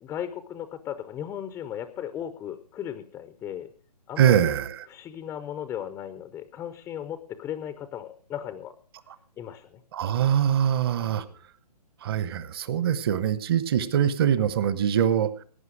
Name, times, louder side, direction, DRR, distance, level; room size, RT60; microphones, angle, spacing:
voice 1, 0.0-3.7 4.1-4.5 4.9-8.7 9.4-9.8 11.1-11.3, left 10 dB, 10° left, 10 dB, 0.6 m, -36 dB
voice 2, 4.2-4.7 9.9-11.2 12.0-15.4, right 9 dB, 35° right, 14 dB, 1.1 m, -23 dB
18.0 x 9.5 x 4.8 m, 0.41 s
figure-of-eight pair, 135°, 21 cm